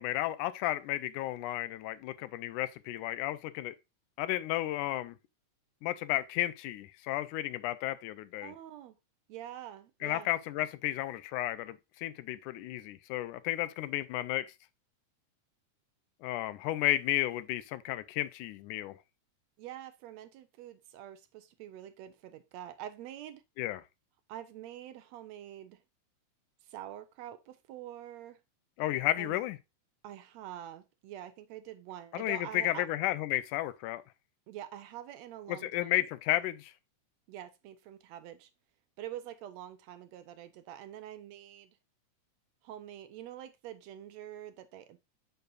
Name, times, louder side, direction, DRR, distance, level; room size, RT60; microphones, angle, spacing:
voice 1, 0.0-3.7 4.2-5.2 5.8-8.5 10.0-14.5 16.2-18.9 23.6-23.8 28.8-29.6 32.1-34.0 35.6-36.7, left 15 dB, 85° left, 2.1 m, -33 dB
voice 2, 8.4-8.9 9.3-10.3 19.6-23.4 24.3-25.8 26.6-28.4 29.2-29.4 30.0-32.9 34.5-36.1 37.3-38.5 39.0-41.7 42.6-45.0, right 11 dB, 75° right, 1.7 m, -46 dB
6.8 x 6.7 x 2.4 m
omnidirectional pair, 3.5 m